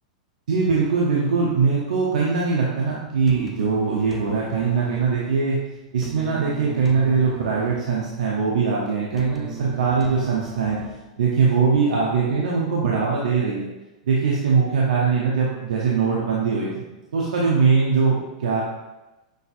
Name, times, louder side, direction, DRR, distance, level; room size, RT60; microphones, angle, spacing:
voice 1, 0.5-5.6 5.9-10.8 11.2-13.7 14.1-16.8 17.1-18.6, right 5 dB, 80° right, -4 dB, 0.7 m, -21 dB
sound 1, 3.3-11.3, right 5 dB, 5° right, 0.5 m, -38 dB
6.2 x 2.6 x 2.5 m, 1.1 s
hypercardioid pair, 125°, 4 cm